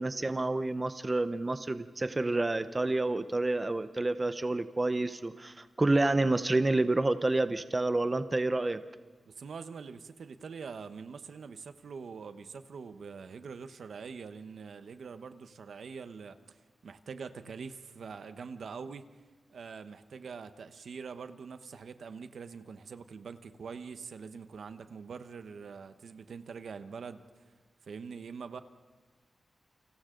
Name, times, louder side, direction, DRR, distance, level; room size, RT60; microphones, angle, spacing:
voice 1, 0.0-8.8, right 2 dB, 25° right, 11 dB, 0.8 m, -29 dB
voice 2, 9.3-19.1 19.5-27.4 27.9-28.6, right 5 dB, 80° right, 10 dB, 1.0 m, -44 dB
29.5 x 26.5 x 3.9 m, 1.4 s
wide cardioid pair, 130°, 0 cm